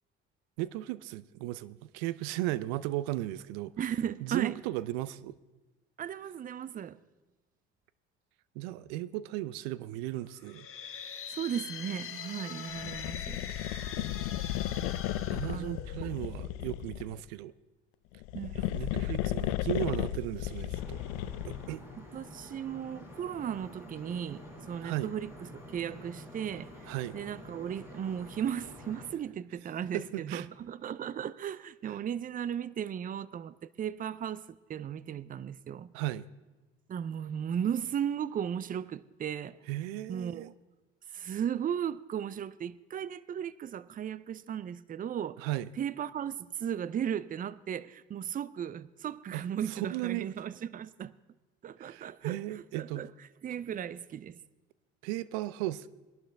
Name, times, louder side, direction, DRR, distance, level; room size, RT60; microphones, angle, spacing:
voice 1, 0.6-3.7 4.2-5.3 8.6-10.7 13.6-13.8 14.2-14.3 14.8-14.9 15.3-17.5 18.5-21.0 21.4-21.8 24.8-25.1 26.9-27.1 29.9-30.5 35.9-36.2 39.7-40.5 45.4-45.7 49.3-50.3 51.9-53.0 55.0-55.9, right 15 dB, 70° right, 0.6 m, -36 dB
voice 2, 3.8-4.6 6.0-7.0 11.3-13.4 15.4-16.1 18.3-18.5 22.0-35.9 36.9-39.6 40.1-40.5 41.1-45.5 45.8-51.1 51.6-52.4 52.7-53.1 53.4-54.4, right 9 dB, 25° right, 0.5 m, -36 dB
sound 1, 10.4-16.3, left 7 dB, 40° left, 1.5 m, -43 dB
sound 2, 12.8-17.2 18.1-21.8, left 13 dB, 70° left, 0.6 m, -34 dB
sound 3, 20.7-29.1, left 1 dB, 10° right, 5.9 m, -49 dB
21.0 x 11.5 x 3.4 m
hypercardioid pair, 70°, 33 cm